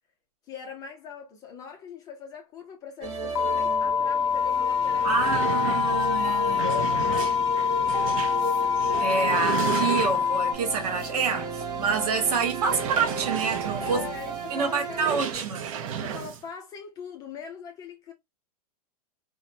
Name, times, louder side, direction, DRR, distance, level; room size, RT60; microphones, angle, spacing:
voice 1, 0.5-5.5 5.9-6.0 6.5-8.2 12.7-13.1 13.8-15.5 16.0-18.1, left 7 dB, 20° left, 0.5 m, -41 dB
sound 1, 3.0-15.3, right 3 dB, 20° right, 0.7 m, -34 dB
sound 2, 3.3-10.5, left 7 dB, 65° left, 0.6 m, -25 dB
sound 3, 4.4-4.5 4.8-10.5 11.0-11.1 11.5-11.6 12.6-16.4, right 8 dB, 60° right, 0.6 m, -34 dB
voice 2, 5.0-6.7 9.0-14.0 14.5-15.6, right 5 dB, 75° right, 1.1 m, -27 dB
2.9 x 2.1 x 2.5 m
supercardioid pair, 160°, 20 cm